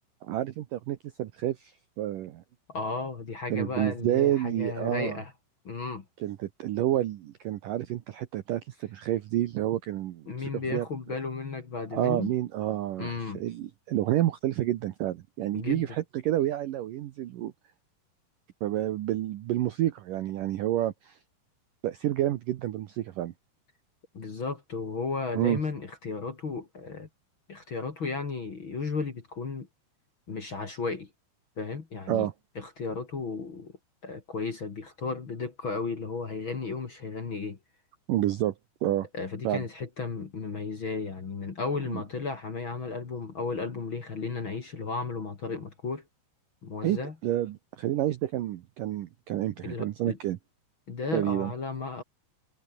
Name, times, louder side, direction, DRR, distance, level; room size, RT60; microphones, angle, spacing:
voice 1, 0.2-2.4 3.5-5.2 6.2-10.9 11.9-17.5 18.6-21.2 21.8-23.3 25.3-25.6 32.1-32.3 38.1-38.5 38.8-39.1 39.4-39.6 41.9-42.0 46.8-50.4 51.1-51.5, right 13 dB, 75° right, 2.0 m, -29 dB
voice 2, 2.7-5.3 5.6-6.0 10.3-12.3 13.0-13.4 15.5-15.8 24.1-27.1 27.5-29.7 30.3-31.1 31.6-32.3 32.6-33.7 34.0-37.6 39.1-46.0 46.6-47.1 49.6-50.2 50.9-52.0, left 4 dB, 35° left, 2.3 m, -34 dB
omnidirectional pair, 5.2 m